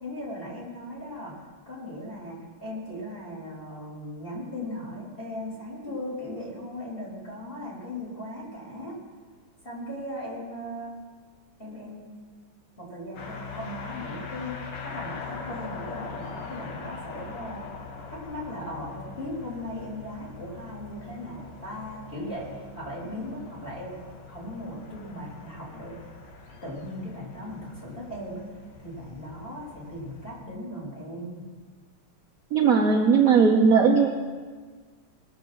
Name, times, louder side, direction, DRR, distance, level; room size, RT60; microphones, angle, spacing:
voice 1, 0.0-1.4 1.7-9.0 9.6-11.0 11.6-12.1 12.8-17.7 18.1-24.0 24.3-26.1 26.6-28.5 28.8-31.4, left 1 dB, 25° left, -6 dB, 4.4 m, -38 dB
sound 1, 13.2-30.4, left 5 dB, 60° left, 1.9 m, -42 dB
voice 2, 32.5-34.2, right 5 dB, 55° right, 1 dB, 1.1 m, -19 dB
20.0 x 7.2 x 6.1 m, 1.5 s
omnidirectional pair, 2.2 m